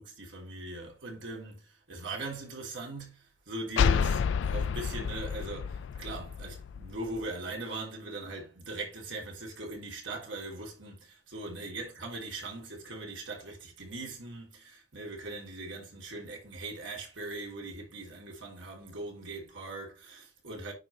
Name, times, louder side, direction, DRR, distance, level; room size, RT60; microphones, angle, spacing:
voice 1, 0.0-1.6 1.9-20.7, right 2 dB, 90° right, 3.2 m, -40 dB
sound 1, 3.8-7.3, left 6 dB, 80° left, 0.3 m, -29 dB
9.8 x 3.8 x 3.1 m
head